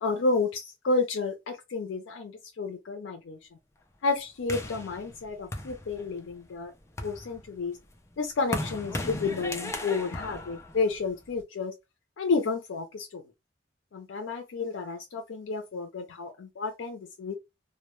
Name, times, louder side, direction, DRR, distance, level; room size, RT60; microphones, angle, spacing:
voice 1, 0.0-3.4 4.0-6.7 7.0-7.8 8.2-11.7 12.2-13.2 13.9-17.3, left 4 dB, 85° left, 0.4 m, -31 dB
sound 1, 4.5-6.3 6.8-11.4, left 1 dB, 15° left, 0.4 m, -37 dB
2.0 x 2.0 x 3.0 m
head